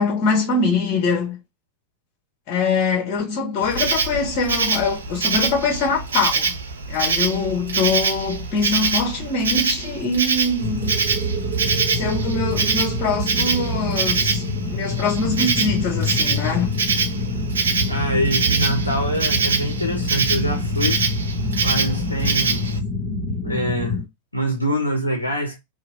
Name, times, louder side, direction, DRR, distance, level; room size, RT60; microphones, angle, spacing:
voice 1, 0.0-1.4 2.5-6.5 6.9-10.9 11.9-16.7, left 4 dB, 40° left, 1.2 m, -23 dB
Insect, 3.6-22.8, right 5 dB, 70° right, 0.4 m, -25 dB
sound 1, 10.6-24.0, left 1 dB, 40° right, 1.1 m, -26 dB
voice 2, 17.9-21.0 21.6-22.6 23.4-24.0 24.3-25.6, right 1 dB, 85° left, 0.6 m, -24 dB
2.8 x 2.2 x 2.6 m
figure-of-eight pair, 90°, 0 cm